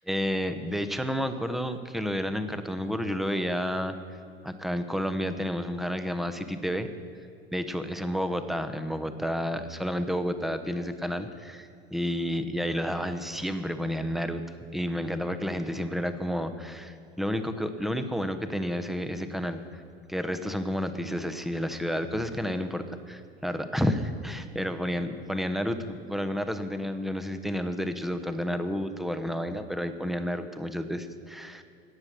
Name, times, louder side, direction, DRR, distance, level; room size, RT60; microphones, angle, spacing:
voice 1, 0.0-4.0 4.4-6.9 7.5-14.4 14.7-19.8 20.1-31.6, equal, ahead, 9 dB, 0.9 m, -31 dB
17.5 x 7.4 x 6.7 m, 2.4 s
hypercardioid pair, 80°, 31 cm